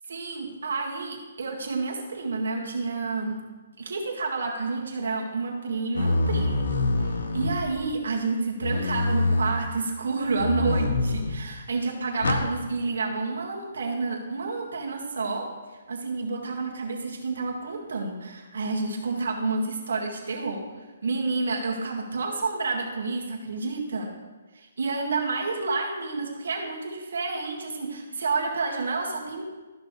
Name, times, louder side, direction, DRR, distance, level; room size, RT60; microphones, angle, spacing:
voice 1, 0.1-3.4 3.8-6.7 7.0-15.5 15.9-20.6 21.0-24.1 24.5-29.4, right 3 dB, 80° right, -1 dB, 2.0 m, -29 dB
sound 1, 5.9-7.9 8.6-9.6 10.4-11.4 12.2-12.5, left 2 dB, 85° left, 0.9 m, -25 dB
13.0 x 6.5 x 3.3 m, 1.2 s
hypercardioid pair, 170°, 0 cm